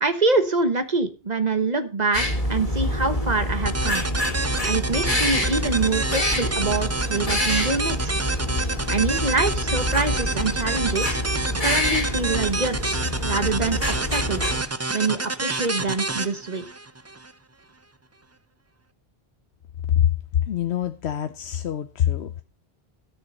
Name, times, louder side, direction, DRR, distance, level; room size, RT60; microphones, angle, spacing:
voice 1, 0.0-4.0 4.6-8.1 8.9-11.2 11.6-14.5 14.9-16.6, right 3 dB, 40° right, 9 dB, 1.3 m, -25 dB
sound 1, 2.1-14.6, left 1 dB, 35° left, 2.3 m, -26 dB
sound 2, 3.6-17.3, right 3 dB, 20° right, 0.4 m, -28 dB
voice 2, 20.5-22.4, left 10 dB, 80° left, 9 dB, 1.0 m, -25 dB
12.5 x 6.6 x 5.3 m, 0.33 s
omnidirectional pair, 1.1 m